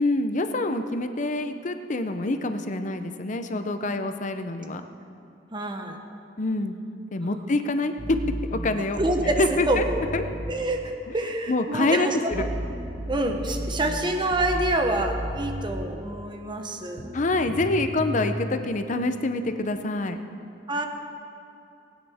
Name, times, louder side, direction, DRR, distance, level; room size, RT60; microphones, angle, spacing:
voice 1, 0.0-4.8 6.4-8.2 8.5-9.0 9.4-9.9 10.1-10.2 11.1-11.2 11.5-12.5 17.1-20.2, left 2 dB, 45° left, 8 dB, 0.7 m, -26 dB
voice 2, 5.5-6.0 7.2-7.4 9.0-9.8 10.5-12.5 13.1-17.1 20.7-20.8, right 1 dB, 25° right, 4 dB, 1.0 m, -27 dB
sound 1, 8.0-10.6 12.3-15.9 17.0-18.6, right 1 dB, 65° right, 1.4 m, -33 dB
19.5 x 9.7 x 3.6 m, 2.7 s
head